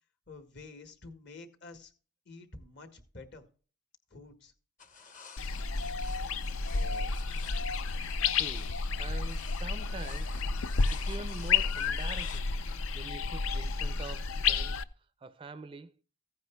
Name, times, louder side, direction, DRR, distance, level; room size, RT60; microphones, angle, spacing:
voice 1, 0.3-1.9 2.2-3.4 4.1-4.5, left 3 dB, 50° left, 1.4 m, -49 dB
sound 1, 4.8-12.4, left 5 dB, 35° left, 0.8 m, -53 dB
sound 2, 5.4-14.8, left 4 dB, 70° left, 0.5 m, -31 dB
voice 2, 6.6-7.2 8.3-10.4 10.9-12.5 12.9-15.9, right 3 dB, 25° right, 0.4 m, -45 dB
15.0 x 9.4 x 2.2 m
head